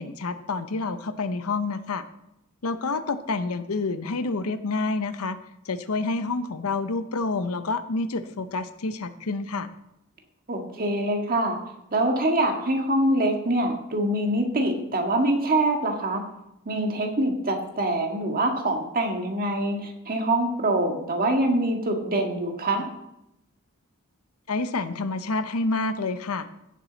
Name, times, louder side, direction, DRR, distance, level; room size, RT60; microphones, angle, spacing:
voice 1, 0.0-2.1 2.6-5.4 5.6-9.7 24.5-26.5, left 3 dB, 90° left, 11 dB, 0.8 m, -28 dB
voice 2, 10.5-11.6 11.9-16.2 16.6-22.9, right 1 dB, 45° right, 2 dB, 1.8 m, -24 dB
16.0 x 7.5 x 4.0 m, 0.86 s
head